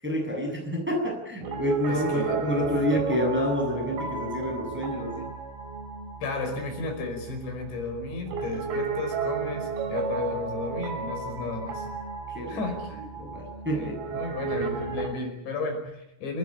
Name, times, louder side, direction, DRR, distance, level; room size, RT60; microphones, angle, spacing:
voice 1, 0.0-5.3 12.3-12.6 13.2-14.1, left 1 dB, ahead, 0 dB, 7.1 m, -28 dB
Piano, 1.4-15.1, right 5 dB, 55° right, 4.7 m, -33 dB
voice 2, 1.9-2.7 6.2-11.9 12.5-13.1 13.7-16.4, left 3 dB, 65° left, 3 dB, 7.3 m, -33 dB
28.5 x 19.5 x 9.0 m, 0.82 s
omnidirectional pair, 5.7 m